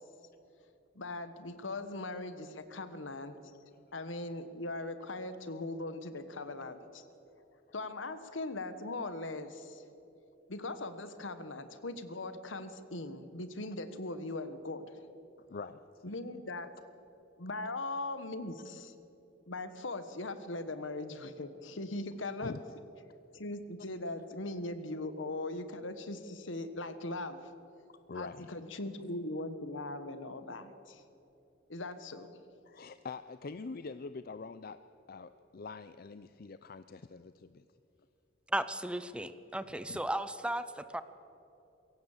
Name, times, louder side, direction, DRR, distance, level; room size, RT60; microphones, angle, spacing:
voice 1, 0.9-3.4 3.9-7.1 7.7-9.8 10.5-15.1 16.0-16.7 17.4-18.9 19.5-22.5 23.3-27.5 28.1-31.0 31.7-32.3, left 2 dB, 90° left, 11 dB, 1.4 m, -40 dB
voice 2, 15.5-16.0 22.4-22.6 28.1-28.5 32.7-34.8 35.1-37.6 39.9-40.0, left 4 dB, 50° left, 12 dB, 0.5 m, -44 dB
voice 3, 38.5-41.0, right 1 dB, 5° right, 13 dB, 0.6 m, -35 dB
23.0 x 17.0 x 7.4 m, 2.8 s
head